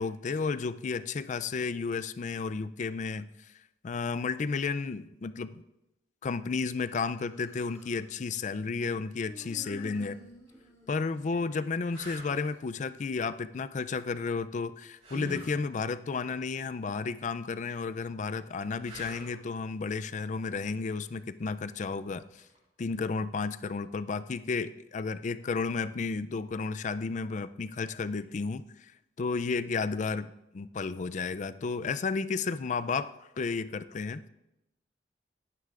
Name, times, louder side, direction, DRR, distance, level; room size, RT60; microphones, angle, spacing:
voice 1, 0.0-3.3 3.8-5.6 6.2-10.2 10.9-22.2 22.8-28.9 29.2-33.1 33.4-34.2, left 4 dB, 45° left, 13 dB, 0.4 m, -32 dB
Human voice, 7.1-8.0 9.2-11.9, right 1 dB, 20° left, 3.3 m, -51 dB
sound 1, 10.3-10.5 11.2-11.3 11.9-12.4 15.0-15.6 18.8-19.4 22.4-22.6, right 1 dB, 40° right, 3.9 m, -43 dB
17.5 x 9.7 x 2.5 m, 0.91 s
head